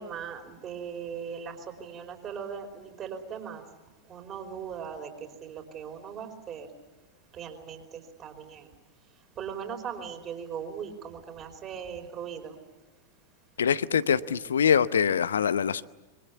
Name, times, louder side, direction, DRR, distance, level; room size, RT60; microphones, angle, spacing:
voice 1, 0.0-3.6 4.1-6.7 7.3-8.7 9.4-12.6 14.1-14.4, right 7 dB, 30° right, 4.7 m, -39 dB
voice 2, 13.6-15.8, left 7 dB, 70° left, 0.8 m, -24 dB
26.0 x 24.0 x 7.1 m
figure-of-eight pair, 90°, 0 cm